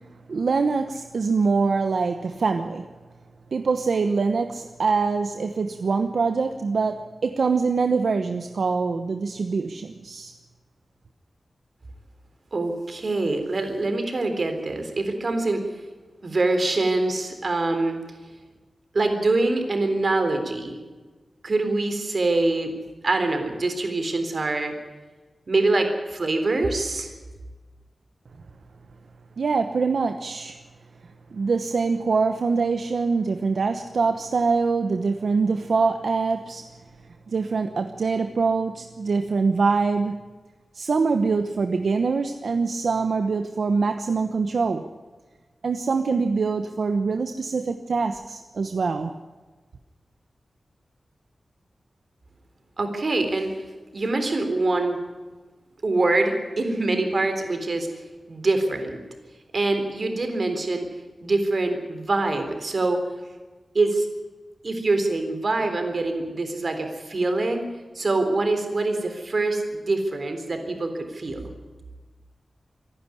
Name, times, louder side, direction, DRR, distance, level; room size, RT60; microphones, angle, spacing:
voice 1, 0.3-2.9 3.5-10.3 29.4-30.6 31.3-36.6 37.3-40.2 40.7-44.8 45.6-49.2, right 4 dB, 70° right, 7 dB, 1.1 m, -24 dB
voice 2, 12.5-15.6 16.2-18.0 18.9-20.8 21.4-22.7 23.0-24.7 25.5-27.1 52.8-53.5 53.9-55.0 55.8-57.9 58.3-59.0 59.5-60.9 61.2-63.0 63.7-64.1 64.6-67.6 68.0-71.5, right 2 dB, 50° right, 6 dB, 3.7 m, -24 dB
25.5 x 11.5 x 9.9 m, 1.3 s
wide cardioid pair, 115°, 0 cm